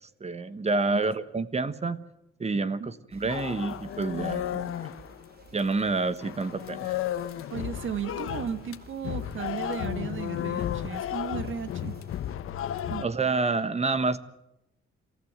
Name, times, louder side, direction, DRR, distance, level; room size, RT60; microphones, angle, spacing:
voice 1, 0.0-2.0 2.4-4.7 5.5-7.0 13.0-14.2, right 3 dB, 30° right, 13 dB, 1.4 m, -28 dB
sound 1, 3.1-12.4, right 4 dB, 45° right, 3.1 m, -54 dB
sound 2, 3.3-5.9 6.2-13.1, left 11 dB, 85° left, 1.2 m, -33 dB
voice 2, 7.5-12.0 12.9-13.1, right 8 dB, 70° right, 11 dB, 1.8 m, -35 dB
27.5 x 15.0 x 9.6 m, 0.86 s
cardioid pair, 105°, 21 cm